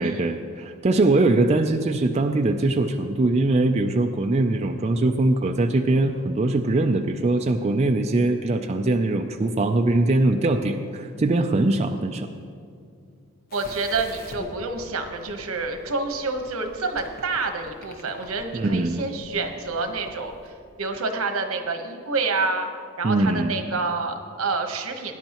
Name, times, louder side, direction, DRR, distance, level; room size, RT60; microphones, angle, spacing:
voice 1, 0.0-12.3 18.5-19.0 23.0-23.6, right 2 dB, 30° right, 4 dB, 0.4 m, -22 dB
sound 1, 13.5-20.5, left 1 dB, 45° left, 1.2 m, -44 dB
voice 2, 13.5-20.5 20.8-22.7 23.0-25.2, right 3 dB, 80° right, 5 dB, 1.1 m, -28 dB
17.5 x 9.9 x 3.0 m, 2.2 s
head